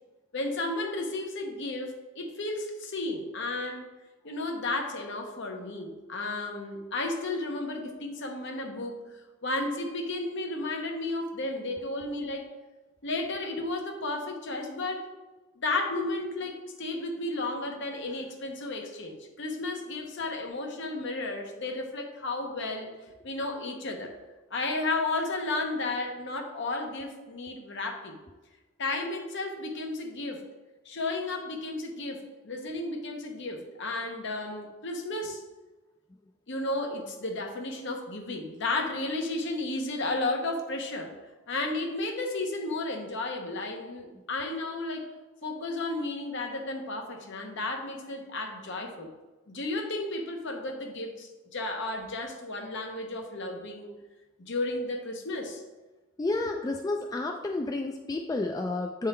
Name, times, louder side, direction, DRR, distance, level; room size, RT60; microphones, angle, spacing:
voice 1, 0.3-3.9 4.2-12.5 13.0-15.1 15.6-22.9 23.2-24.1 24.5-28.2 28.8-30.4 30.8-35.4 36.5-41.1 41.5-45.1 45.4-49.1 49.5-53.9 54.4-55.6, left 2 dB, 60° left, 3 dB, 0.9 m, -33 dB
voice 2, 56.2-59.1, left 2 dB, 15° left, 3 dB, 0.3 m, -30 dB
7.8 x 3.7 x 4.3 m, 1.2 s
head